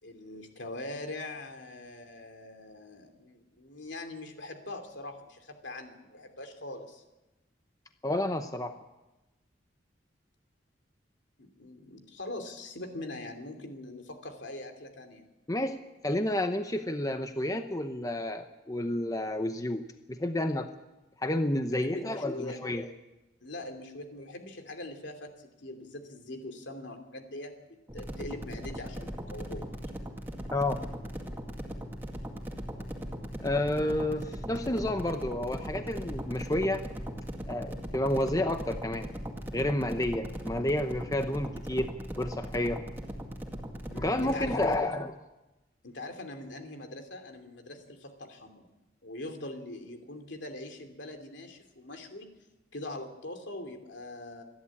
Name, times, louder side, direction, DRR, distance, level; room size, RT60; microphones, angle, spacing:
voice 1, 0.0-7.0 11.4-15.2 21.8-22.6 23.4-29.7 43.9-44.8 45.8-48.7 49.0-52.3 52.7-54.4, left 2 dB, 75° left, 6 dB, 2.9 m, -42 dB
voice 2, 8.0-8.7 15.5-15.8 16.0-19.8 20.1-20.7 21.2-22.9 30.5-30.8 33.4-36.8 37.5-39.1 39.5-42.8 43.9-45.1, left 1 dB, 20° left, 7 dB, 0.9 m, -30 dB
sound 1, 27.9-44.8, equal, 10° right, 2.2 m, -39 dB
27.0 x 11.0 x 8.6 m, 1.0 s
head